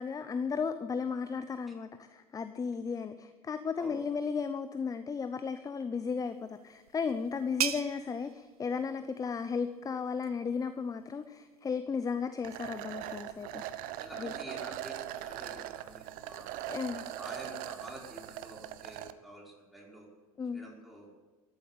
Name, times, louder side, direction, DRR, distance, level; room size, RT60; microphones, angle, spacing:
voice 1, 0.0-13.6 14.2-14.3 16.7-17.0 20.4-20.6, left 5 dB, 20° left, 11 dB, 0.8 m, -35 dB
sound 1, 6.3-11.7, right 9 dB, 75° right, 0.9 m, -41 dB
sound 2, 12.4-19.1, right 13 dB, 50° right, 1.0 m, -41 dB
voice 2, 14.0-16.5 16.9-20.1 20.5-21.2, right 1 dB, ahead, -3 dB, 5.3 m, -48 dB
14.0 x 11.5 x 8.4 m, 1.3 s
figure-of-eight pair, 75°, 19 cm